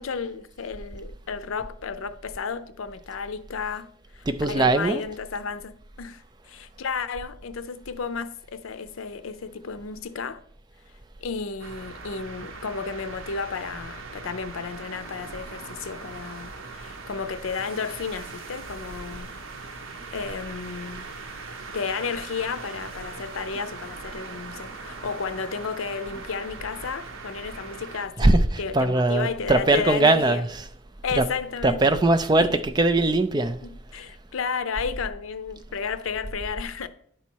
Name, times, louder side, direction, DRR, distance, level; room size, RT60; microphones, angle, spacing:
voice 1, 0.0-10.4 11.2-19.4 20.1-21.1 21.7-30.4 31.0-32.0 32.4-32.6 33.6-36.9, left 5 dB, 85° left, 0.5 m, -33 dB
voice 2, 4.3-5.0 28.2-28.5 28.7-30.5 31.2-31.3 31.6-33.6, right 2 dB, 20° right, 0.4 m, -20 dB
sound 1, 11.6-28.1, right 4 dB, 85° right, 0.9 m, -40 dB
10.0 x 4.1 x 4.5 m
head